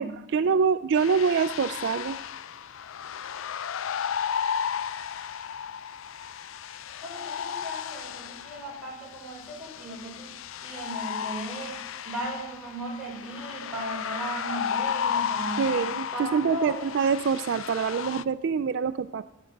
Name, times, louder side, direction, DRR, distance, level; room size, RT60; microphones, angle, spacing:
voice 1, 0.0-2.2 15.6-19.2, right 6 dB, 55° right, 13 dB, 0.4 m, -25 dB
sound 1, 1.0-18.2, left 8 dB, 65° left, 0.4 m, -34 dB
voice 2, 7.0-10.3 10.6-11.8 12.0-15.7 16.1-16.9, right 1 dB, 5° right, -5 dB, 4.9 m, -36 dB
16.0 x 9.7 x 5.2 m, 0.88 s
head